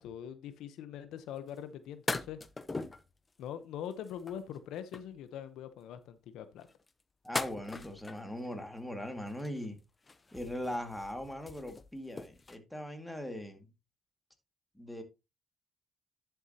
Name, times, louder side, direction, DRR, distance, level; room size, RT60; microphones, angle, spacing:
voice 1, 0.0-2.4 3.4-6.7, left 9 dB, 85° left, 0.9 m, -43 dB
sound 1, 1.5-1.6 2.1-3.1 3.9-5.2 6.6-8.5 9.3-9.8 10.0-12.6, left 3 dB, 25° left, 0.9 m, -40 dB
voice 2, 7.2-9.8 10.3-13.7 14.8-15.0, left 1 dB, 5° left, 2.1 m, -40 dB
11.0 x 7.1 x 2.9 m
cardioid pair, 90°, 0 cm